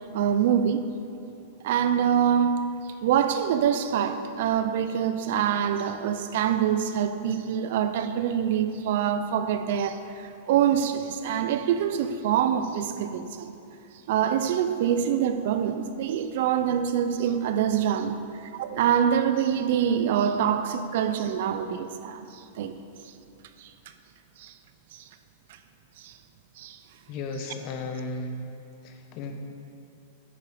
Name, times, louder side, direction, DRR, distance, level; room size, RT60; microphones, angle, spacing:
voice 1, 0.1-0.9 1.6-2.7 3.0-13.6 14.1-22.8 23.6-23.7 24.4-24.5 24.9-25.0 26.0-26.1 26.6-26.8, right 9 dB, 50° right, 0.5 m, -25 dB
voice 2, 27.1-28.4 28.8-29.3, left 3 dB, 30° left, 0.8 m, -34 dB
9.9 x 9.5 x 4.9 m
supercardioid pair, 175°, 0 cm